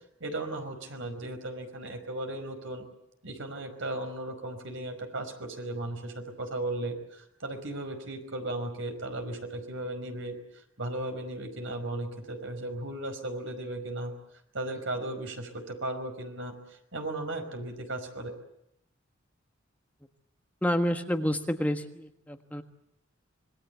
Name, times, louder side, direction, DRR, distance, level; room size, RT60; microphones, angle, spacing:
voice 1, 0.2-2.9 3.2-10.4 10.8-14.1 14.5-18.3, right 1 dB, 70° right, 5 dB, 5.1 m, -36 dB
voice 2, 20.6-22.6, equal, 10° left, 6 dB, 1.5 m, -29 dB
26.0 x 21.5 x 8.2 m, 0.77 s
head